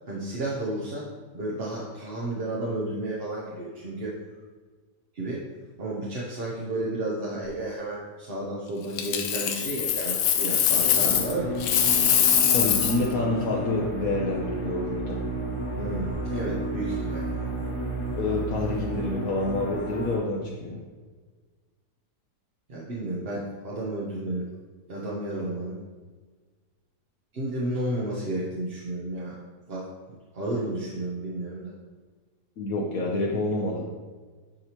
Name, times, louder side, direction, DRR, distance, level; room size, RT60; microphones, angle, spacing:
voice 1, 0.1-1.1 1.3-4.2 5.1-5.4 5.8-11.6 15.8-17.3 22.7-24.5 24.9-25.8 27.3-29.4 29.7-29.9 30.3-31.7, right 1 dB, 45° right, -6 dB, 1.0 m, -32 dB
Coin (dropping), 9.0-11.3 11.6-13.1 15.9-16.1, left 9 dB, 85° left, 1.2 m, -23 dB
sound 1, 10.7-20.2, right 1 dB, 5° right, 1.2 m, -32 dB
voice 2, 12.5-15.2 18.2-20.8 32.6-33.8, left 2 dB, 65° left, -3 dB, 1.1 m, -28 dB
8.8 x 4.8 x 3.0 m, 1.4 s
omnidirectional pair, 1.7 m